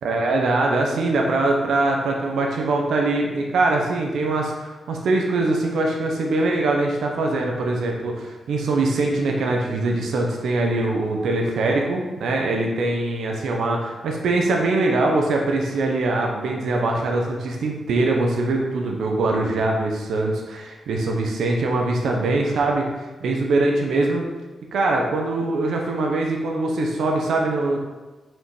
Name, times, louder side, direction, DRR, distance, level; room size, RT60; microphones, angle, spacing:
voice 1, 0.0-24.2 24.7-27.8, right 2 dB, 90° right, 0 dB, 1.0 m, -22 dB
5.6 x 5.4 x 5.0 m, 1.2 s
wide cardioid pair, 115°, 0 cm